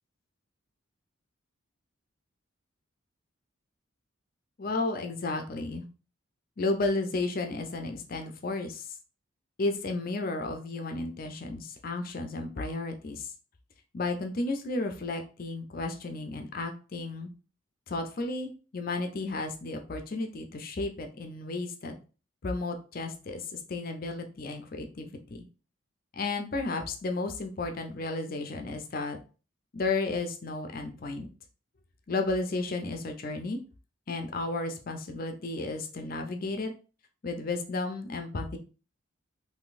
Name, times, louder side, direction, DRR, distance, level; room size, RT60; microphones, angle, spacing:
voice 1, 4.6-5.9 6.6-9.0 9.6-13.3 13.9-17.3 17.9-22.0 22.4-25.4 26.1-29.2 29.7-31.3 32.1-33.6 34.1-36.7 37.2-38.6, left 3 dB, 45° left, 5 dB, 0.5 m, -33 dB
3.8 x 2.6 x 2.4 m, 0.34 s
head